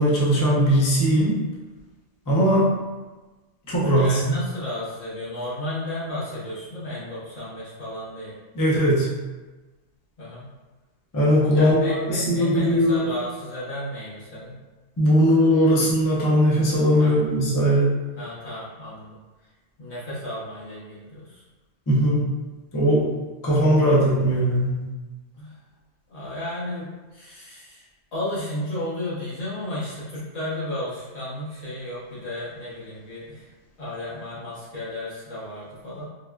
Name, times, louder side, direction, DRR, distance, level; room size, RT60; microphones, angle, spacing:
voice 1, 0.0-1.4 2.3-2.7 3.7-4.2 8.5-9.1 11.1-13.1 15.0-17.9 21.9-22.2 22.7-23.1 23.4-24.8, equal, 25° left, -6 dB, 0.4 m, -19 dB
voice 2, 3.9-8.3 10.2-10.4 11.5-14.5 17.0-17.2 18.1-19.2 19.8-21.4 25.3-25.6 26.1-33.5 33.8-36.1, left 1 dB, 65° left, -9 dB, 1.4 m, -33 dB
4.1 x 2.2 x 2.3 m, 1.2 s
omnidirectional pair, 1.3 m